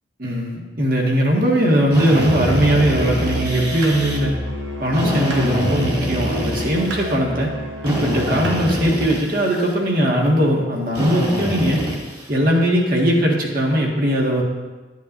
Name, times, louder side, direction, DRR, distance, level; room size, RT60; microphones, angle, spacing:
voice 1, 0.2-4.4 4.8-7.5 7.8-11.8 12.3-14.4, equal, 50° right, -1 dB, 1.6 m, -19 dB
Drill, 1.9-4.2 4.9-7.2 7.8-9.7 10.9-12.3, equal, 30° right, 2.1 m, -25 dB
Musical instrument, 2.2-8.9, equal, 75° right, 1.1 m, -29 dB
12.5 x 9.1 x 2.6 m, 1.2 s
head